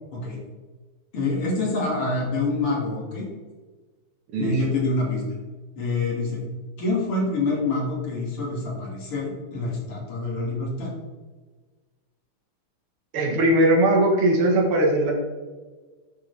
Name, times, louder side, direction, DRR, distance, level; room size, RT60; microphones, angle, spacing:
voice 1, 1.1-3.3 4.4-5.2 5.7-6.4 6.8-10.9, left 2 dB, 85° left, -3 dB, 3.1 m, -26 dB
voice 2, 13.1-15.1, right 1 dB, 80° right, 0 dB, 2.2 m, -19 dB
8.8 x 6.8 x 3.3 m, 1.3 s
omnidirectional pair, 2.4 m